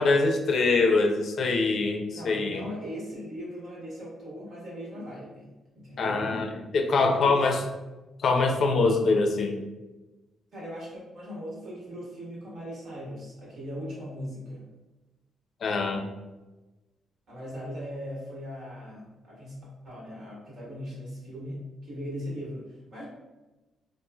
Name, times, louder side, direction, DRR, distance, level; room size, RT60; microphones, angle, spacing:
voice 1, 0.0-2.6 6.0-6.5 6.7-7.6 8.2-9.6 15.6-16.0, left 3 dB, 60° left, 4 dB, 0.4 m, -24 dB
voice 2, 2.1-6.3 7.1-7.5 10.5-14.7 17.3-19.6 19.8-23.0, equal, 65° right, -5 dB, 1.4 m, -39 dB
3.0 x 2.4 x 2.3 m, 1.1 s
supercardioid pair, 60°, 0 cm